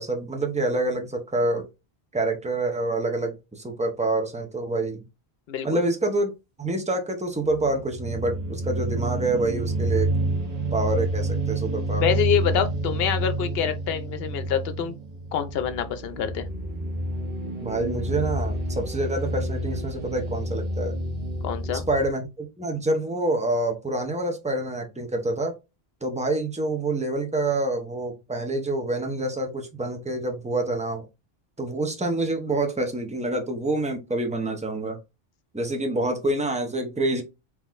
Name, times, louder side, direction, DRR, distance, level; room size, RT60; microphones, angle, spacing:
voice 1, 0.0-1.7 2.1-5.0 5.6-6.3 6.6-10.1 10.7-12.1 17.6-21.0 21.9-25.6 26.0-31.1 31.6-35.0 35.5-37.2, right 2 dB, 10° right, 0.5 m, -27 dB
voice 2, 5.5-5.8 12.0-15.0 15.3-16.5 21.4-21.9, left 8 dB, 75° left, 0.8 m, -26 dB
sound 1, 7.4-22.1, right 2 dB, 40° right, 0.9 m, -29 dB
3.7 x 3.0 x 2.5 m
omnidirectional pair, 1.0 m